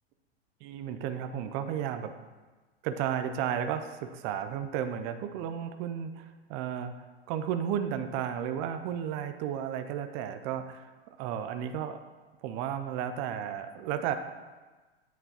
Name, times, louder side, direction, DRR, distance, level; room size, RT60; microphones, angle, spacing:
voice 1, 0.6-2.1 2.8-6.9 7.3-10.9 11.2-12.0 12.4-14.1, right 9 dB, 35° right, 8 dB, 0.4 m, -33 dB
9.1 x 3.7 x 2.9 m, 1.3 s
hypercardioid pair, 115°, 32 cm